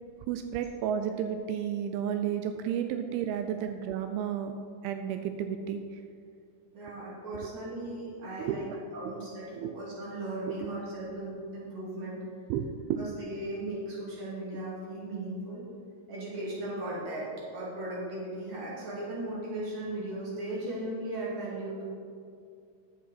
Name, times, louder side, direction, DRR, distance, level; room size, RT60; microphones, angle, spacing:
voice 1, 0.3-4.6 4.8-6.0 8.4-8.8 9.2-9.7 10.5-10.6 12.5-13.0 13.7-13.8, right 9 dB, 85° right, 7 dB, 2.4 m, -32 dB
voice 2, 6.7-8.7 8.9-12.2 13.0-15.6 16.1-21.9, right 1 dB, 35° right, -7 dB, 3.0 m, -37 dB
11.0 x 7.7 x 4.2 m, 2.4 s
omnidirectional pair, 4.3 m